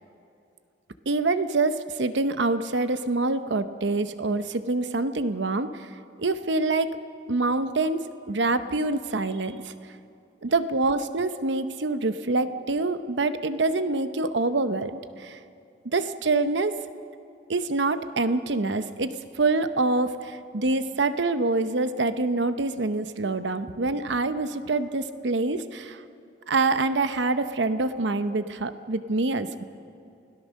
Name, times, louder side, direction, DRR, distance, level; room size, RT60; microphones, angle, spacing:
voice 1, 1.1-5.9 6.2-7.0 7.3-9.7 10.4-15.4 15.9-16.7 17.5-26.0 26.5-29.6, right 3 dB, 85° right, 11 dB, 0.9 m, -26 dB
29.5 x 17.5 x 6.4 m, 2.5 s
head